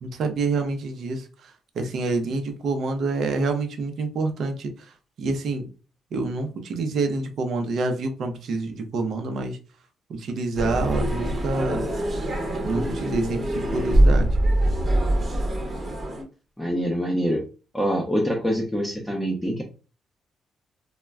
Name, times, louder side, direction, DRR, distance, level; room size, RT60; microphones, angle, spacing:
voice 1, 0.0-5.7 6.1-9.6 10.1-12.0 12.6-14.4, right 3 dB, 70° right, 6 dB, 0.6 m, -27 dB
sound 1, 10.6-16.2, right 1 dB, 35° right, 0.9 m, -23 dB
voice 2, 16.6-17.4 17.7-19.6, equal, 5° left, 0 dB, 0.6 m, -25 dB
2.2 x 2.1 x 3.4 m, 0.34 s
cardioid pair, 90°, 0 cm